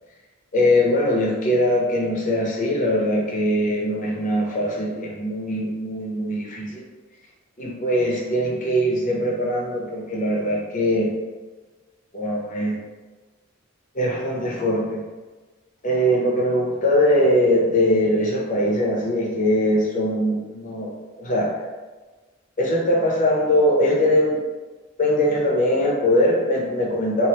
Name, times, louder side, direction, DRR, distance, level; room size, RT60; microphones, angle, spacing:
voice 1, 0.5-6.8 7.6-11.1 12.1-12.8 13.9-15.0 15.8-20.9 21.2-21.5 22.6-24.4 25.0-27.3, equal, 40° left, -2 dB, 0.6 m, -21 dB
3.1 x 2.5 x 2.8 m, 1.3 s
head